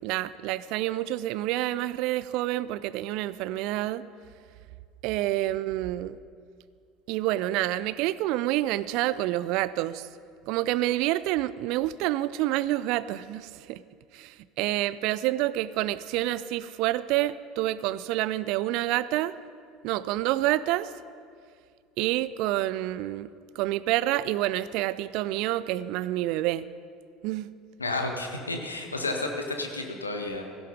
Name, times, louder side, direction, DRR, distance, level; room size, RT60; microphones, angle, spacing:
voice 1, 0.0-4.0 5.0-6.2 7.1-10.1 10.5-13.8 14.1-19.3 19.8-20.9 22.0-23.3 23.6-26.7 27.2-27.5, right 15 dB, 55° right, 17 dB, 0.5 m, -28 dB
voice 2, 27.8-30.4, left 2 dB, 85° left, 3 dB, 1.6 m, -31 dB
16.5 x 16.0 x 5.1 m, 2.2 s
figure-of-eight pair, 65°, 0 cm